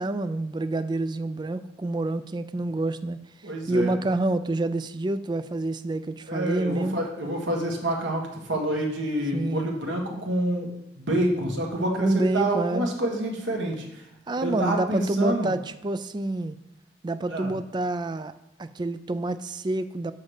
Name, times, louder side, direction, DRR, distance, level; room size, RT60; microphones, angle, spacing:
voice 1, 0.0-3.2 3.7-7.0 9.3-9.7 12.0-12.9 14.3-16.6 17.0-18.3 18.6-20.1, right 2 dB, 25° right, 12 dB, 0.3 m, -27 dB
voice 2, 3.4-3.9 6.3-10.7 11.0-13.8 14.4-15.5 17.3-17.5, right 1 dB, 80° right, 0 dB, 1.7 m, -27 dB
6.4 x 4.8 x 6.5 m, 0.85 s
head